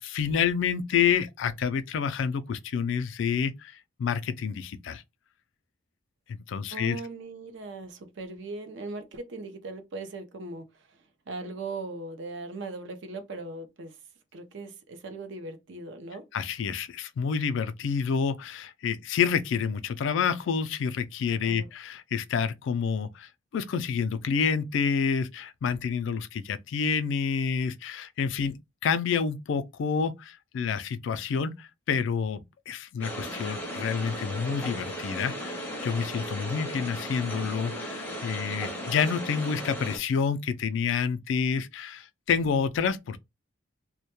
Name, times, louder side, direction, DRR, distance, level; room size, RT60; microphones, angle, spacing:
voice 1, 0.0-5.0 6.3-7.0 16.3-28.6 28.8-43.2, left 6 dB, 65° left, 0.3 m, -28 dB
voice 2, 6.7-14.0 14.3-16.2 21.4-21.7, right 3 dB, 60° right, 0.5 m, -39 dB
sound 1, 33.0-40.0, equal, 10° left, 0.5 m, -36 dB
2.1 x 2.1 x 2.8 m
head